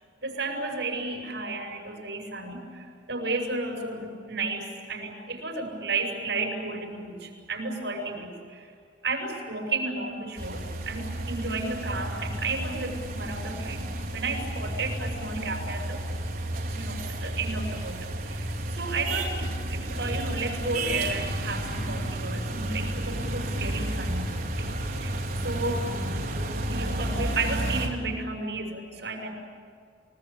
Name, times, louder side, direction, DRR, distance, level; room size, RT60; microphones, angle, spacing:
voice 1, 0.2-8.7 9.0-13.9 14.1-16.0 16.7-24.7 25.0-26.0 26.3-29.3, right 3 dB, 75° right, 2 dB, 6.4 m, -33 dB
sound 1, 10.4-27.9, right 1 dB, 50° right, 5.0 m, -31 dB
30.0 x 19.5 x 8.7 m, 2.2 s
head